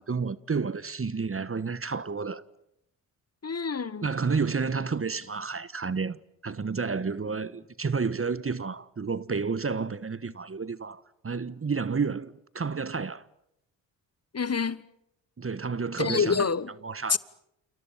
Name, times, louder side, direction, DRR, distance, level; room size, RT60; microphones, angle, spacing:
voice 1, 0.0-2.4 4.0-6.2 6.4-13.2 15.4-16.5 16.8-17.2, right 5 dB, 25° right, 1.2 m, -30 dB
voice 2, 3.4-4.1 14.3-14.8 16.0-16.7 17.1-17.2, left 5 dB, 30° left, 1.3 m, -27 dB
29.0 x 28.5 x 5.8 m
hypercardioid pair, 45°, 48 cm